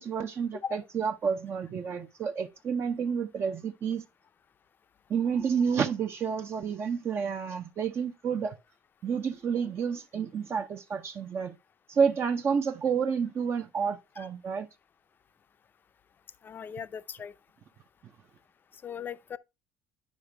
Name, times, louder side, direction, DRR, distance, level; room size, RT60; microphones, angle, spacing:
voice 1, 0.0-4.0 5.1-8.6 9.0-11.5 11.9-14.7, right 6 dB, 45° right, 0.7 m, -30 dB
voice 2, 16.4-17.3 18.8-19.4, left 7 dB, 35° left, 0.5 m, -38 dB
10.5 x 5.0 x 3.3 m
cardioid pair, 100°, 6 cm